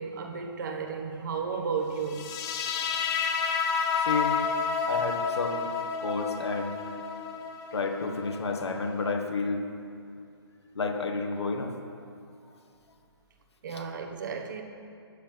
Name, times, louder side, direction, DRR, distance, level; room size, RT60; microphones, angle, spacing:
voice 1, 0.0-2.3 13.6-14.6, right 5 dB, 45° right, 5 dB, 1.3 m, -33 dB
sound 1, 2.1-9.1, left 5 dB, 20° left, 1.0 m, -30 dB
voice 2, 4.0-4.4 4.9-5.7 6.0-6.8 7.7-9.7 10.8-11.7, left 4 dB, 75° left, 3 dB, 1.8 m, -30 dB
12.5 x 9.1 x 5.2 m, 2.4 s
figure-of-eight pair, 145°, 14 cm